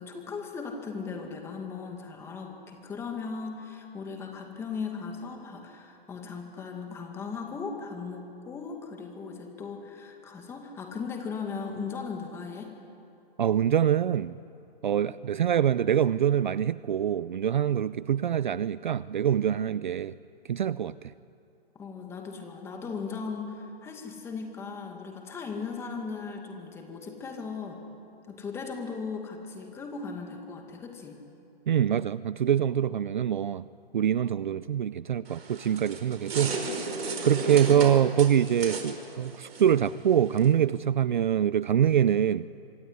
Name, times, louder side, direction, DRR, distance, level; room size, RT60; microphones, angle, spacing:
voice 1, 0.0-12.7 21.7-27.8 28.3-31.2, left 5 dB, 10° left, 2.2 m, -37 dB
voice 2, 13.4-14.4 14.8-20.1 20.5-21.1 31.7-33.6 33.9-37.0 37.2-42.5, right 9 dB, 50° right, 0.5 m, -25 dB
sound 1, 35.3-40.5, right 3 dB, 70° right, 4.9 m, -35 dB
25.5 x 23.5 x 9.7 m
hypercardioid pair, 160°, 31 cm